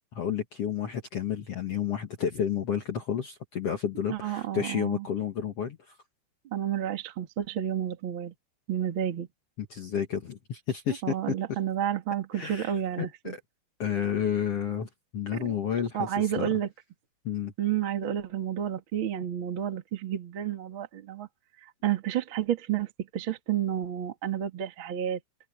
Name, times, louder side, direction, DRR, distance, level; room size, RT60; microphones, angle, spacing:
voice 1, 0.1-6.0 9.6-11.6 12.3-12.7 13.0-13.4 13.8-16.5 17.2-17.5, left 8 dB, 90° left, 1.3 m, -31 dB
voice 2, 4.1-5.0 6.5-8.3 8.7-9.3 11.0-13.3 15.3-15.5 15.9-16.7 17.6-21.3 21.8-25.2, right 10 dB, 45° right, 1.6 m, -30 dB
open air
omnidirectional pair, 5.5 m